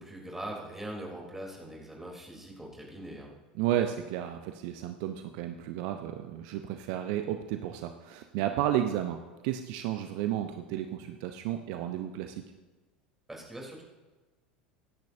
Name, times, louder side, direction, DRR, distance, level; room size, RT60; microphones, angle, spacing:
voice 1, 0.0-3.3 13.3-13.8, right 1 dB, 5° right, -1 dB, 3.6 m, -41 dB
voice 2, 3.6-12.4, right 11 dB, 55° right, 7 dB, 0.8 m, -32 dB
24.0 x 10.5 x 2.8 m, 1.2 s
figure-of-eight pair, 80°, 5 cm